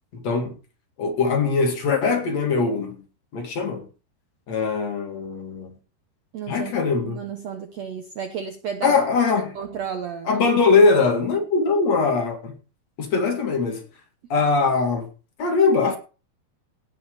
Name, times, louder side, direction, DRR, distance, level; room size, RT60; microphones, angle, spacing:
voice 1, 0.1-0.6 1.0-3.0 3.3-3.9 4.5-5.8 6.5-7.2 8.8-9.6 10.3-12.6 13.0-13.8 14.3-15.1 15.4-16.0, left 4 dB, 45° left, 3.0 m, -21 dB
voice 2, 6.3-6.7 7.0-9.0 9.5-10.3, right 7 dB, 90° right, 1.5 m, -32 dB
17.0 x 5.8 x 6.8 m
omnidirectional pair, 4.7 m